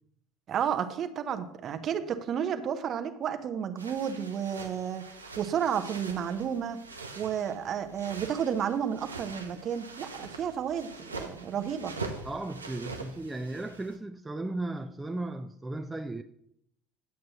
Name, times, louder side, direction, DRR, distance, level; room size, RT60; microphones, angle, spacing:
voice 1, 0.5-5.0 5.4-6.8 7.2-11.9, right 8 dB, 45° right, 0.8 m, -31 dB
sound 1, 3.8-14.0, right 3 dB, 90° right, 0.6 m, -43 dB
voice 2, 12.2-16.2, right 2 dB, 15° right, 0.4 m, -36 dB
9.5 x 7.5 x 3.0 m
figure-of-eight pair, 65°, 0 cm